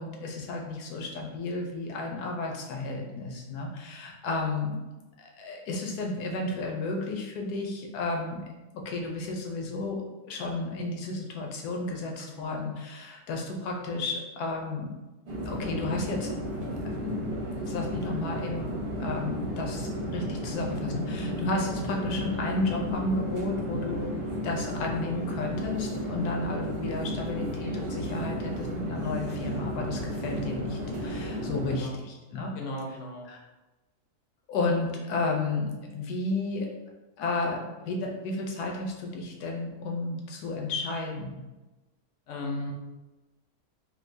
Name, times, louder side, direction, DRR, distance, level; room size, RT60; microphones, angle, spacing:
voice 1, 0.0-4.8 5.2-8.4 8.7-14.9 15.4-16.3 16.8-17.2 17.7-24.1 24.4-32.5 33.3-33.4 34.5-36.7 37.2-41.4, left 2 dB, 80° left, 0 dB, 1.2 m, -32 dB
voice 2, 12.3-12.6 31.7-32.0 32.6-33.3 42.3-42.7, left 1 dB, 65° left, 1 dB, 0.8 m, -36 dB
sound 1, 15.3-31.8, equal, 45° right, 0.9 m, -33 dB
sound 2, 17.4-22.9, equal, 65° right, 0.7 m, -41 dB
3.7 x 2.7 x 2.6 m, 1.1 s
omnidirectional pair, 1.6 m